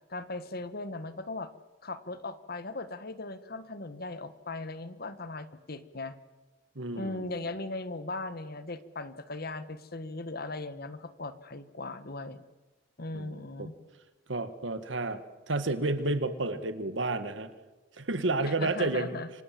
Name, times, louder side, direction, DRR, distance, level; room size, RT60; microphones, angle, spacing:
voice 1, 0.1-1.5 1.8-6.2 6.9-12.4 13.0-13.8 18.4-19.3, left 2 dB, 55° left, 12 dB, 1.5 m, -38 dB
voice 2, 6.7-7.4 13.1-13.7 14.3-15.2 15.5-17.5 18.0-19.2, right 2 dB, 85° right, 11 dB, 1.8 m, -31 dB
28.0 x 25.5 x 7.6 m, 1.2 s
head